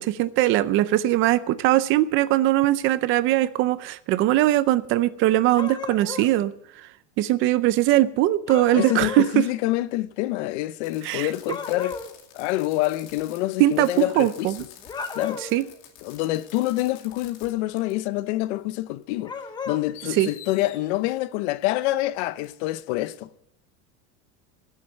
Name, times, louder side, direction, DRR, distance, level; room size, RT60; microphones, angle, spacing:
voice 1, 0.0-6.5 6.8-6.9 7.2-9.2 11.0-11.3 13.6-14.6 15.5-15.6 20.2-20.3, right 15 dB, 35° right, 0.6 m, -21 dB
sound 1, 5.5-6.3 8.5-9.3 11.5-12.1 14.8-15.6 19.2-19.8, left 5 dB, 10° left, 0.7 m, -33 dB
voice 2, 8.7-12.0 12.3-14.5 15.1-15.4 16.0-19.3 19.7-23.3, left 17 dB, 75° left, 0.8 m, -26 dB
Fireworks, 10.8-17.5 17.8-17.9 19.0-19.1 19.9-20.8 22.4-22.5, left 9 dB, 55° left, 2.6 m, -48 dB
16.0 x 7.4 x 7.9 m
cardioid pair, 180°, 34 cm